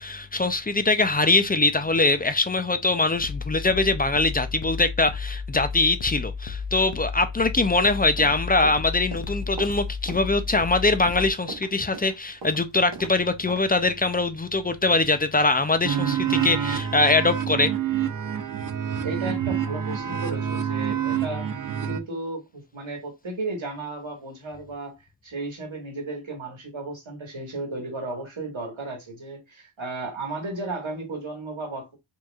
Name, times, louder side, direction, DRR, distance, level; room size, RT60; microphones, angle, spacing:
voice 1, 0.0-17.7, left 3 dB, 20° left, 0.4 m, -22 dB
sound 1, 3.1-11.3, left 5 dB, 65° left, 0.6 m, -33 dB
Run, 8.0-13.1 13.5-13.6, right 3 dB, 60° right, 1.1 m, -39 dB
sound 2, 15.8-22.0, right 8 dB, 45° right, 0.5 m, -27 dB
voice 2, 19.0-21.5 21.8-25.0 25.2-32.0, right 2 dB, 80° right, 1.7 m, -34 dB
4.5 x 2.8 x 2.3 m
wide cardioid pair, 60°, 47 cm